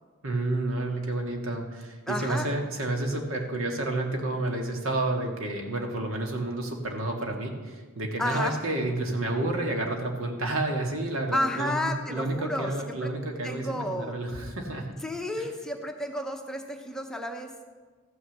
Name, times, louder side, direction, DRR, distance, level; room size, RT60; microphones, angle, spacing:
voice 1, 0.2-15.0, right 2 dB, 85° right, 2 dB, 1.8 m, -30 dB
voice 2, 2.1-2.5 8.2-8.6 11.3-12.7 13.0-13.1 13.4-14.2 15.0-17.5, left 1 dB, 5° left, 3 dB, 0.7 m, -31 dB
14.0 x 6.4 x 7.2 m, 1.4 s
head